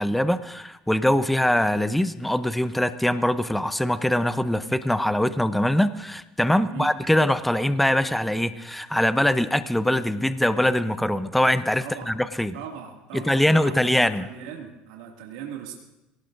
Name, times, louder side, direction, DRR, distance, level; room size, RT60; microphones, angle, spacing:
voice 1, 0.0-12.5 13.1-14.3, left 1 dB, 5° left, 12 dB, 0.7 m, -23 dB
voice 2, 6.6-6.9 11.8-12.1 12.5-15.7, right 8 dB, 85° right, 0 dB, 2.3 m, -39 dB
23.0 x 18.0 x 2.6 m, 0.97 s
supercardioid pair, 95°, 3 cm